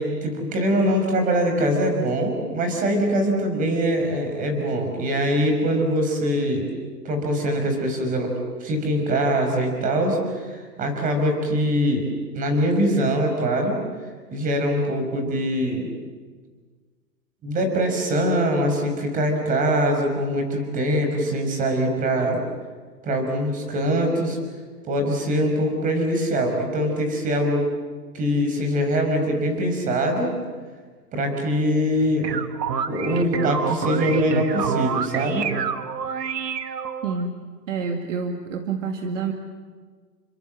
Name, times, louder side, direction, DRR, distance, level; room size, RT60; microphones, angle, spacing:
voice 1, 0.0-6.7 7.0-12.1 12.3-13.8 14.3-15.9 17.4-22.4 23.0-24.4 24.8-27.7 28.1-30.3 31.1-32.3 32.9-35.5, equal, 15° right, 4 dB, 5.4 m, -23 dB
sound 1, 32.0-37.2, right 6 dB, 80° right, 2.0 m, -27 dB
voice 2, 37.0-39.3, right 5 dB, 50° right, 4 dB, 2.4 m, -28 dB
30.0 x 24.5 x 7.6 m, 1.5 s
hypercardioid pair, 150°, 49 cm